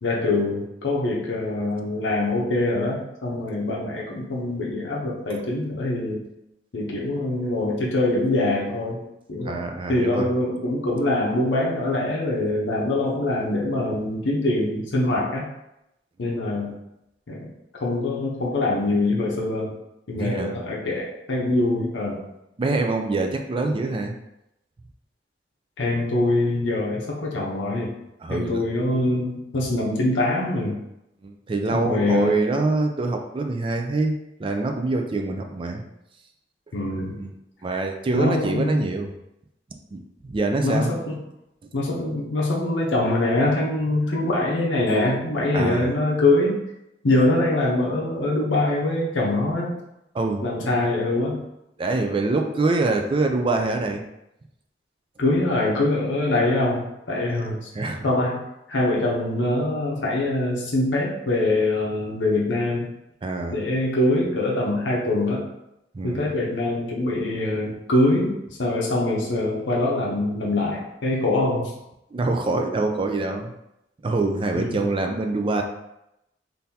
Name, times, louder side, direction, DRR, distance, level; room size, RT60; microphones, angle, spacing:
voice 1, 0.0-6.2 6.7-9.0 9.3-15.5 16.2-16.8 17.3-17.5 17.8-19.8 20.1-22.2 25.8-27.9 28.3-30.8 31.7-32.4 36.7-37.2 38.1-38.8 40.6-41.2 41.7-46.6 47.0-49.8 50.4-51.4 55.2-57.7 58.0-58.4 58.7-62.9 63.5-65.5 66.0-71.7 74.6-74.9, left 2 dB, 85° left, -3 dB, 0.7 m, -24 dB
voice 2, 9.4-10.3 20.1-20.5 22.6-24.2 28.2-28.6 31.2-34.1 34.4-35.8 37.0-37.3 37.6-39.1 39.9-40.9 45.5-45.9 50.1-50.7 51.8-54.0 57.8-58.1 63.2-63.6 65.9-66.3 72.1-73.5 74.0-75.6, right 3 dB, 30° right, 4 dB, 0.3 m, -25 dB
3.7 x 2.6 x 2.8 m, 0.85 s
head